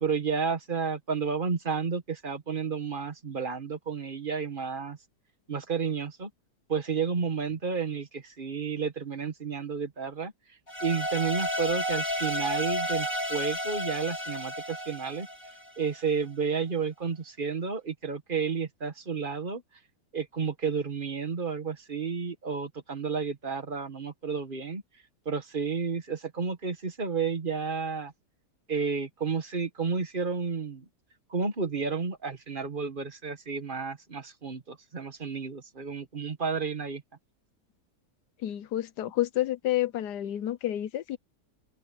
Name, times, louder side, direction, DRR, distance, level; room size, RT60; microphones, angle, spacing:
voice 1, 0.0-5.0 5.5-6.3 6.7-10.3 10.8-15.3 15.8-19.6 20.1-24.8 25.2-28.1 28.7-30.8 31.3-37.0, right 5 dB, 30° right, 1.5 m, -31 dB
sound 1, 10.7-15.9, equal, 35° left, 3.1 m, -32 dB
voice 2, 38.4-41.2, left 13 dB, 75° left, 1.4 m, -29 dB
open air
omnidirectional pair, 1.8 m